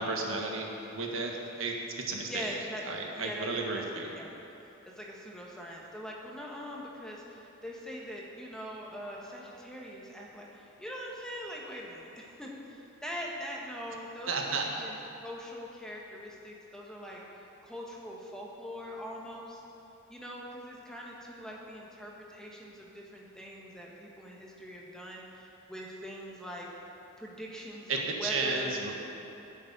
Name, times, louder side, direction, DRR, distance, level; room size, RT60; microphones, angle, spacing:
voice 1, 0.0-1.8 2.1-2.5 2.8-4.1 14.3-14.8 27.9-28.9, right 3 dB, 70° right, 0 dB, 1.5 m, -33 dB
voice 2, 2.3-2.8 3.1-3.8 4.1-4.3 5.0-19.6 20.1-26.7 27.2-28.9, equal, 5° left, -3 dB, 1.5 m, -42 dB
10.0 x 7.4 x 8.9 m, 3.0 s
head